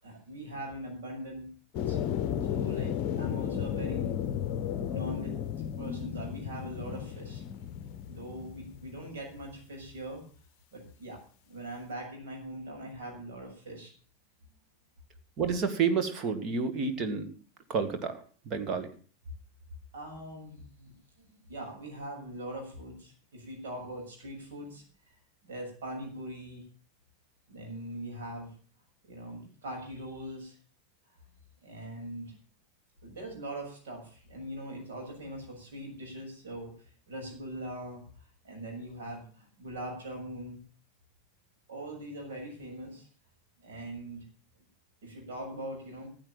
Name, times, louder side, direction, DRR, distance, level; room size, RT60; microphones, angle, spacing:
voice 1, 0.0-1.5 1.9-2.0 2.5-4.2 4.9-5.4 5.8-7.4 8.1-10.2 10.7-13.9 19.9-24.8 25.4-26.6 27.5-28.5 29.0-30.6 31.6-32.4 33.0-36.7 37.1-38.0 38.4-40.6 41.7-43.1 43.6-44.2 45.0-46.1, right 1 dB, 60° right, 1 dB, 7.0 m, -41 dB
sound 1, 1.7-9.4, left 9 dB, 40° left, 0.8 m, -34 dB
voice 2, 15.4-17.3 17.7-18.9, right 5 dB, 30° right, 8 dB, 2.1 m, -30 dB
14.5 x 8.1 x 7.3 m, 0.41 s
figure-of-eight pair, 90°, 0 cm